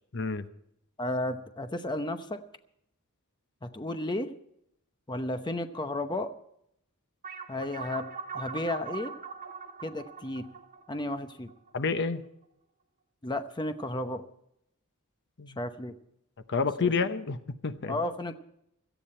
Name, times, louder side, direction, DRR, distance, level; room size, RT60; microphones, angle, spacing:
voice 1, 0.1-0.5 11.7-12.2 15.4-15.6 16.5-18.0, left 4 dB, 55° left, 10 dB, 0.9 m, -29 dB
voice 2, 1.0-2.4 3.6-4.3 5.1-6.3 7.5-8.1 8.3-9.1 9.8-10.5 10.9-11.5 13.2-14.2 15.6-15.9 16.8-16.9 17.9-18.3, left 1 dB, 20° left, 8 dB, 0.8 m, -33 dB
sound 1, 7.2-12.1, right 5 dB, 40° right, 1.6 m, -41 dB
17.5 x 13.5 x 4.4 m, 0.75 s
head